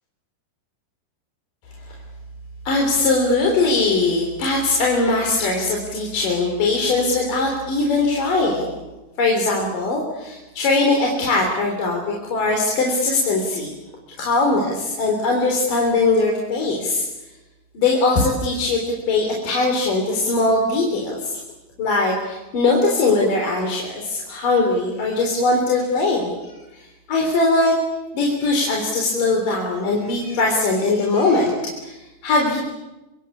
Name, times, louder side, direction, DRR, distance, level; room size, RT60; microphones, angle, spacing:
voice 1, 2.6-8.7 9.2-13.7 14.2-17.0 17.7-18.8 19.1-21.3 21.8-27.7 28.1-31.6 31.8-32.6, left 3 dB, 50° left, 0 dB, 5.0 m, -20 dB
26.0 x 24.0 x 8.5 m, 1.0 s
omnidirectional pair, 4.9 m